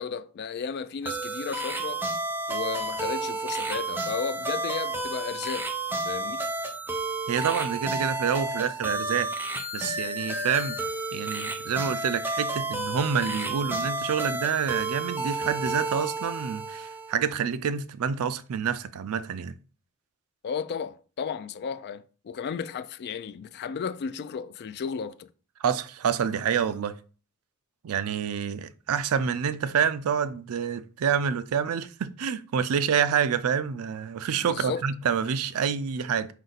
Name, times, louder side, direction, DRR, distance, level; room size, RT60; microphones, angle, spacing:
voice 1, 0.0-2.1 2.5-5.7 6.1-6.4 20.4-25.3 34.4-34.8, left 6 dB, 50° left, 0.3 m, -34 dB
sound 1, 1.1-17.2, right 2 dB, 10° right, 0.6 m, -31 dB
voice 2, 7.3-9.3 9.7-10.8 11.1-19.5 25.6-26.9 27.8-36.3, right 7 dB, 75° right, 0.4 m, -27 dB
5.1 x 2.6 x 3.9 m
head